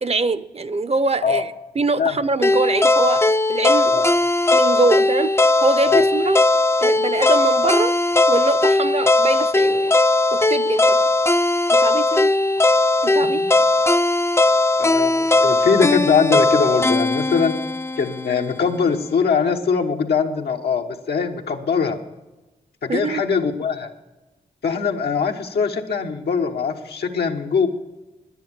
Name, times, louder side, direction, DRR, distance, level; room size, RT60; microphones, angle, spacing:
voice 1, 0.0-4.0 4.5-6.4 6.8-8.0 8.3-10.0 10.3-11.1 11.7-12.3 13.0-13.4 22.9-23.2, right 3 dB, 40° right, 16 dB, 0.7 m, -23 dB
sound 1, 2.4-18.5, left 2 dB, 15° left, 0.4 m, -18 dB
voice 2, 14.8-17.6 18.0-22.0 22.8-23.9 24.6-27.7, left 6 dB, 85° left, 3 dB, 1.2 m, -21 dB
10.0 x 10.0 x 7.4 m, 1.1 s
cardioid pair, 45°, 16 cm